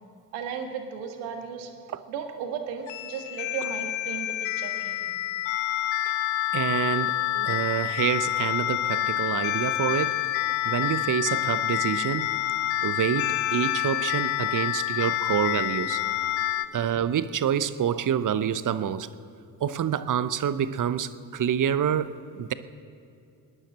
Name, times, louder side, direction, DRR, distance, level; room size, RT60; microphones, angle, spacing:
voice 1, 0.3-1.7 2.1-5.1, right 6 dB, 80° right, 1.7 m, -35 dB
sound 1, 2.9-16.7, left 14 dB, 75° left, 0.8 m, -28 dB
voice 2, 6.5-10.2 10.6-12.3 12.8-16.0 16.7-19.1 19.6-22.5, right 9 dB, 45° right, 0.8 m, -27 dB
19.0 x 10.0 x 7.5 m
hypercardioid pair, 50°, 45 cm